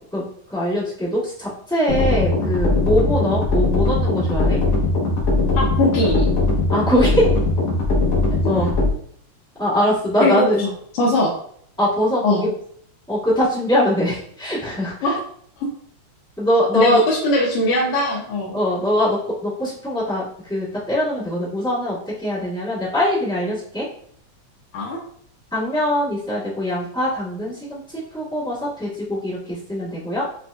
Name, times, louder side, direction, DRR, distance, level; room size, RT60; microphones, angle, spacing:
voice 1, 0.5-4.6 6.7-7.3 8.4-8.7 9.6-10.6 11.8-12.5 13.1-15.2 16.4-17.0 18.5-23.9 25.5-30.2, equal, 5° left, -10 dB, 0.4 m, -22 dB
sound 1, 1.9-8.9, left 2 dB, 65° left, 2.0 m, -20 dB
voice 2, 5.5-6.3 8.4-8.5 10.2-10.5 11.0-11.3 12.2-12.5 15.0-15.2 16.7-18.6 24.7-25.0, left 1 dB, 90° left, -4 dB, 2.2 m, -20 dB
7.3 x 2.5 x 2.2 m, 0.63 s
omnidirectional pair, 3.3 m